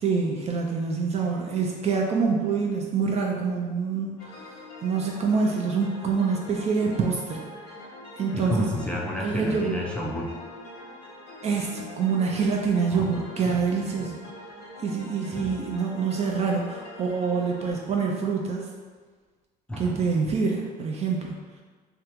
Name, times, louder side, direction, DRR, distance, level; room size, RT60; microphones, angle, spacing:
voice 1, 0.0-4.3 4.8-7.4 8.2-8.6 9.2-9.8 11.4-14.2 14.8-18.7 19.8-21.4, right 5 dB, 40° right, 0 dB, 0.4 m, -26 dB
sound 1, 4.2-17.7, left 1 dB, 90° left, 1.1 m, -44 dB
voice 2, 8.3-10.3 12.9-13.6 13.9-14.1 15.3-15.7 19.7-20.1, equal, 5° left, -3 dB, 0.6 m, -31 dB
3.3 x 2.4 x 3.0 m, 1.5 s
cardioid pair, 110°, 17 cm